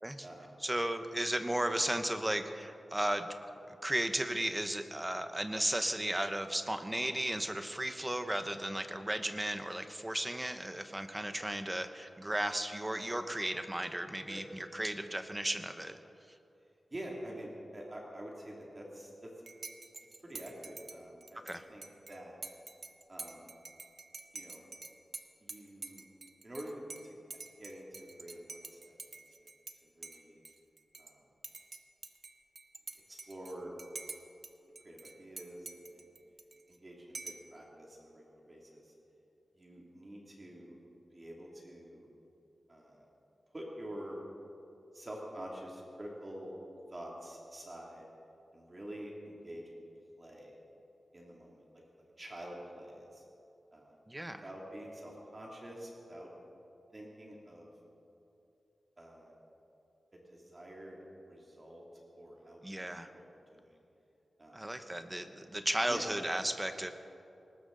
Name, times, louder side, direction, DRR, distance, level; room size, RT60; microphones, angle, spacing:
voice 1, 0.6-3.3 3.7-16.0 21.4-21.6 54.1-54.4 62.6-63.1 64.5-66.9, right 1 dB, 10° right, 8 dB, 0.8 m, -35 dB
voice 2, 16.9-19.3 20.2-22.3 23.1-23.5 24.3-24.6 25.4-26.0 26.4-27.2 27.6-29.0 29.4-29.5 29.9-30.4 31.0-31.2 33.1-33.7 34.8-36.1 36.7-38.9 39.6-40.8 41.1-42.1 42.7-43.1 43.5-44.2 44.9-46.6 46.9-48.1 48.5-49.8 50.2-50.5 51.1-51.6 52.2-53.2 53.7-56.3 56.9-57.7 59.0-59.4 60.1-61.0 61.2-61.8 62.2-63.7 64.4-64.7 64.9-65.2 65.9-66.0, right 1 dB, 25° right, -2 dB, 2.5 m, -47 dB
Dishes pots and pans / Cutlery silverware / Chink clink, 19.5-29.8 30.0-31.1 31.4-34.5 34.8-36.8 37.1-37.5, right 3 dB, 50° right, 0.8 m, -48 dB
20.0 x 19.0 x 3.9 m, 2.8 s
wide cardioid pair, 145°, 0 cm